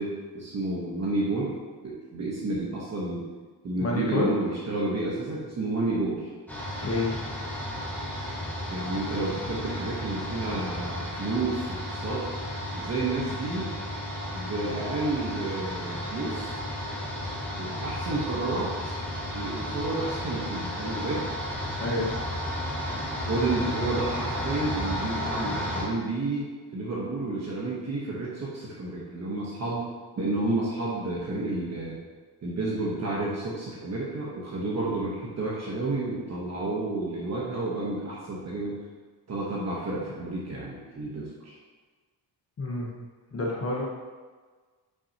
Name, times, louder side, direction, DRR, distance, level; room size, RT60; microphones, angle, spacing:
voice 1, 0.0-1.5 1.8-3.3 3.6-6.3 8.7-12.3 12.7-13.7 14.3-16.6 17.6-19.0 19.3-21.2 23.2-29.8 30.2-32.0 32.4-38.8 39.3-41.6, right 2 dB, 40° right, -5 dB, 1.1 m, -30 dB
voice 2, 3.8-4.3 6.8-7.2 21.8-22.2 42.6-43.0 43.3-43.8, left 2 dB, 35° left, -2 dB, 1.0 m, -28 dB
sound 1, 6.5-25.8, equal, 5° left, 1.4 m, -33 dB
8.5 x 5.8 x 2.8 m, 1.4 s
wide cardioid pair, 175°, 42 cm